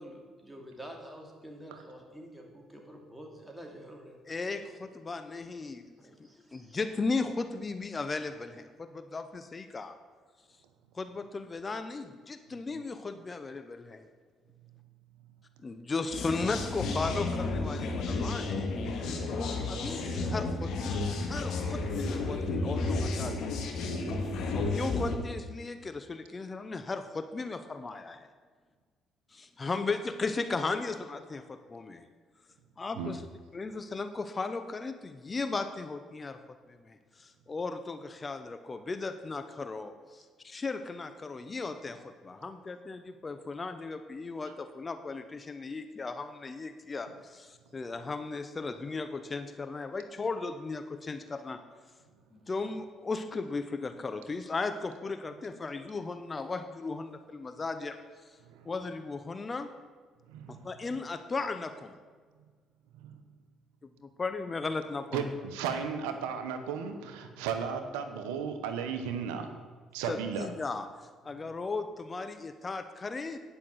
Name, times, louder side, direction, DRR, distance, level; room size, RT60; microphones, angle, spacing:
voice 1, 0.0-4.2 4.5-4.6 6.0-6.9, equal, 5° right, 1 dB, 2.7 m, -48 dB
voice 2, 4.3-5.9 6.5-10.0 10.9-14.1 15.6-18.7 19.3-23.5 24.5-28.3 29.3-32.1 32.8-33.2 33.5-36.4 36.7-51.6 52.3-58.4 58.6-59.7 60.6-61.9 63.8-65.3 70.1-73.4, left 3 dB, 30° left, 9 dB, 0.7 m, -36 dB
sound 1, 16.1-25.2, left 3 dB, 70° left, 1.7 m, -32 dB
voice 3, 24.0-24.9 32.9-33.2 44.4-44.6 47.1-47.2 52.6-52.7 55.3-55.4 58.4-58.8 60.3-61.0 62.9-63.2 65.1-69.6 69.9-70.5 71.4-71.6, right 6 dB, 90° right, 7 dB, 0.9 m, -36 dB
10.0 x 5.9 x 7.8 m, 1.5 s
supercardioid pair, 65°, 0 cm